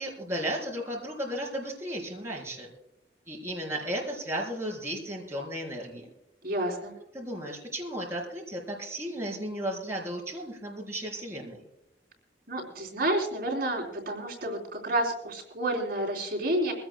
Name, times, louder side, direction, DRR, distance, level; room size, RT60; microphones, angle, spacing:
voice 1, 0.0-2.7 3.3-6.1 7.1-11.6, right 1 dB, 15° right, -2 dB, 3.9 m, -34 dB
voice 2, 6.4-6.9 12.5-16.7, right 1 dB, 55° right, -1 dB, 3.7 m, -30 dB
22.5 x 16.5 x 2.3 m, 0.83 s
head